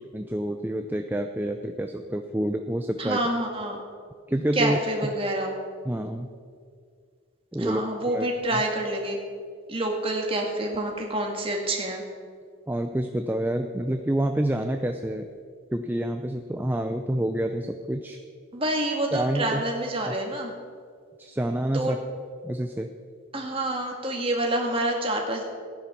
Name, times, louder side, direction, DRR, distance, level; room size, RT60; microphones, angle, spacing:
voice 1, 0.1-3.2 4.3-4.8 5.8-6.3 7.5-7.8 8.1-8.3 8.5-8.6 12.7-15.3 15.7-18.2 19.1-19.6 20.1-20.2 21.2-22.0 22.4-22.9, right 1 dB, 10° right, 5 dB, 0.5 m, -28 dB
voice 2, 3.0-3.8 4.5-5.5 7.6-9.2 9.7-12.0 18.5-20.5 21.7-22.0 23.3-25.4, right 1 dB, 25° right, 1 dB, 2.0 m, -27 dB
15.5 x 10.0 x 5.8 m, 2.1 s
head